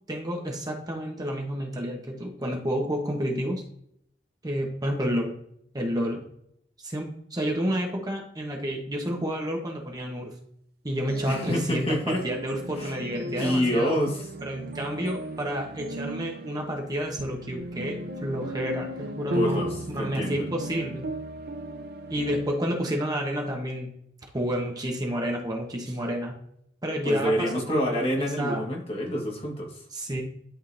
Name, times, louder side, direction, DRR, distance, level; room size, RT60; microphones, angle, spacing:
voice 1, 0.1-3.6 4.4-5.3 5.7-6.2 6.8-10.3 10.8-14.0 14.4-21.0 22.1-23.9 24.3-26.3 26.8-28.7 29.9-30.2, equal, 20° right, 1 dB, 1.0 m, -30 dB
sound 1, 11.1-22.5, right 1 dB, 55° right, 0.6 m, -36 dB
voice 2, 11.3-12.2 12.8-12.9 13.2-14.2 19.3-20.4 27.0-29.8, equal, 35° left, -1 dB, 1.5 m, -27 dB
11.0 x 3.8 x 2.6 m, 0.71 s
head